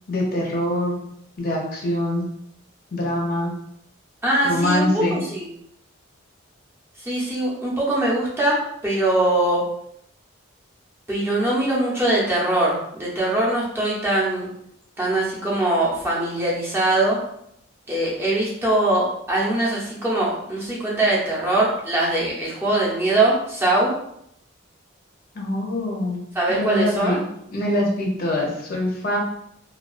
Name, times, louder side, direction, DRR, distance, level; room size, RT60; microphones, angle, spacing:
voice 1, 0.1-1.0 1.4-2.3 2.9-3.5 4.4-5.2 25.3-26.2 26.5-27.2 27.5-29.2, left 1 dB, 50° left, -1 dB, 0.6 m, -24 dB
voice 2, 4.2-5.5 7.0-9.6 11.1-14.5 15.0-17.2 17.9-23.9 26.3-27.2, right 1 dB, 10° right, -6 dB, 0.6 m, -22 dB
2.3 x 2.2 x 2.4 m, 0.74 s
head